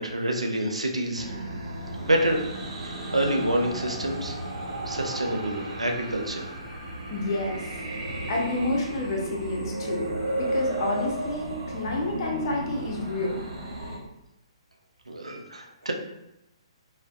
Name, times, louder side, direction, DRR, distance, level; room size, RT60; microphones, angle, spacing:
voice 1, 0.0-1.3 2.0-2.4 2.8-4.4 4.8-6.5 15.1-15.9, right 1 dB, 85° right, 3 dB, 0.4 m, -27 dB
sound 1, 1.1-14.0, right 1 dB, 65° right, 0.8 m, -34 dB
voice 2, 7.1-7.8 8.3-13.4, left 2 dB, 45° left, -1 dB, 0.6 m, -29 dB
2.4 x 2.1 x 2.4 m, 0.86 s
figure-of-eight pair, 125°, 3 cm